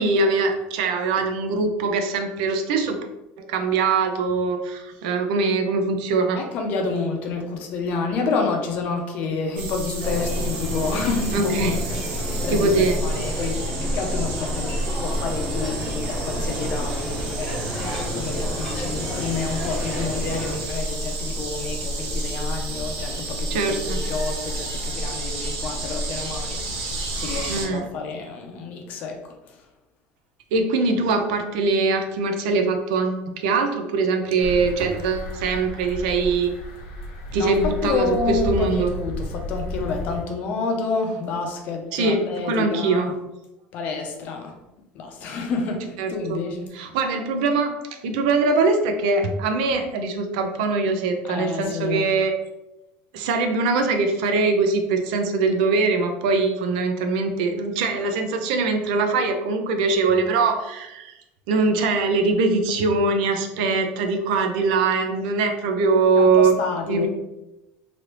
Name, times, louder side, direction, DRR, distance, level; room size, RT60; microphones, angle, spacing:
voice 1, 0.0-3.0 3.4-6.4 11.3-11.8 12.5-13.0 23.5-24.0 27.5-27.9 30.5-36.5 37.3-38.9 41.9-43.1 46.0-46.4 46.7-52.3 53.1-61.1 61.5-66.5 66.9-67.1, right 4 dB, 90° right, 5 dB, 0.5 m, -22 dB
voice 2, 6.4-26.6 27.1-29.6 37.4-43.1 43.7-44.5 44.9-46.7 51.3-52.1 66.2-67.1, left 4 dB, 40° left, 3 dB, 0.5 m, -29 dB
sound 1, 9.5-27.7, right 1 dB, 55° right, 0.8 m, -29 dB
sound 2, 10.0-20.6, equal, ahead, 0.7 m, -32 dB
sound 3, 34.4-40.2, left 1 dB, 85° left, 0.8 m, -32 dB
3.2 x 2.5 x 2.9 m, 0.95 s
cardioid pair, 180°, 4 cm